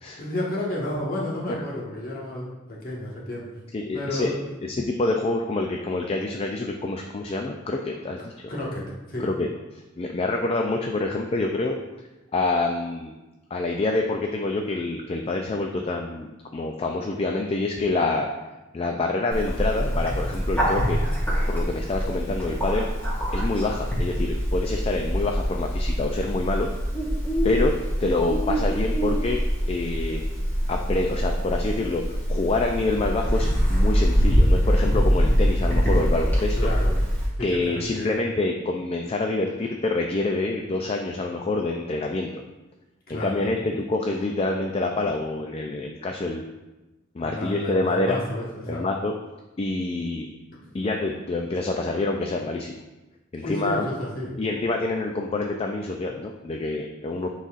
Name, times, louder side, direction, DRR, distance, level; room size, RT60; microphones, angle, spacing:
voice 1, 0.2-3.5 3.9-4.5 8.5-9.3 36.6-37.0 37.5-38.2 43.1-43.7 47.2-48.8 53.4-54.3, left 1 dB, 45° left, -4 dB, 1.4 m, -31 dB
voice 2, 3.7-4.3 4.7-8.3 9.2-9.5 10.0-11.8 12.3-13.1 13.5-18.3 18.7-21.0 21.5-22.9 23.3-26.7 27.4-29.4 29.7-30.2 30.7-32.0 32.3-36.7 37.4-42.3 43.1-46.4 47.1-48.2 48.7-49.1 49.6-50.3 50.7-52.8 53.3-53.9 54.4-57.3, left 2 dB, 30° left, 2 dB, 0.4 m, -26 dB
Bird, 19.3-37.3, equal, 10° left, 1.8 m, -24 dB
9.8 x 4.0 x 2.5 m, 1.1 s
head